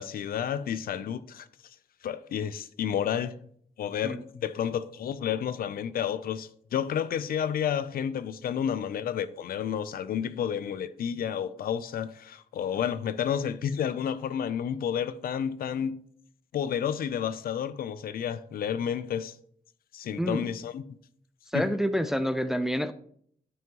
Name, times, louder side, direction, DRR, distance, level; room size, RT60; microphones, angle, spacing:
voice 1, 0.0-1.5 2.0-3.3 3.8-16.0 16.5-19.4 19.9-20.8 21.5-21.7, left 8 dB, 85° left, 0.5 m, -31 dB
voice 2, 20.2-20.5 21.5-22.9, equal, 5° right, 0.4 m, -28 dB
12.0 x 5.5 x 3.0 m
wide cardioid pair, 120°, 15 cm